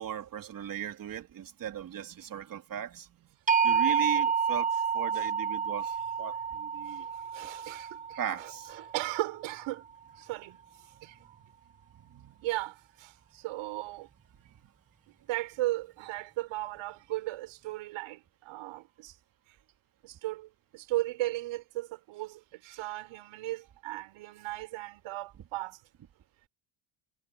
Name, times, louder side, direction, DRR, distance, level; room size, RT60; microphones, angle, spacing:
voice 1, 0.0-3.1 3.6-7.1 8.2-8.7 11.4-11.5 11.9-12.3, right 9 dB, 40° right, 3.4 m, -38 dB
sound 1, 3.5-9.5, right 6 dB, 15° right, 1.5 m, -29 dB
voice 2, 6.9-9.8 10.2-10.6 11.0-11.4 12.4-14.1 15.1-19.1 20.0-25.8, right 17 dB, 75° right, 6.2 m, -36 dB
cardioid pair, 150°, 48 cm